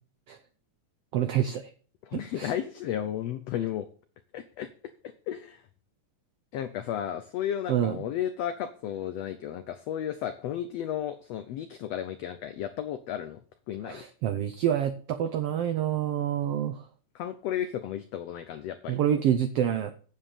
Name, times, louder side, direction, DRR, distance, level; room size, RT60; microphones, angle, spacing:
voice 1, 1.1-1.6 2.1-2.5 7.7-8.0 13.8-16.8 18.9-19.9, right 10 dB, 80° right, 9 dB, 1.3 m, -27 dB
voice 2, 2.1-3.9 4.3-4.7 5.3-5.6 6.5-13.4 13.7-14.0 17.1-19.0, left 10 dB, 75° left, 9 dB, 1.5 m, -33 dB
9.3 x 7.6 x 6.7 m, 0.41 s
omnidirectional pair, 3.8 m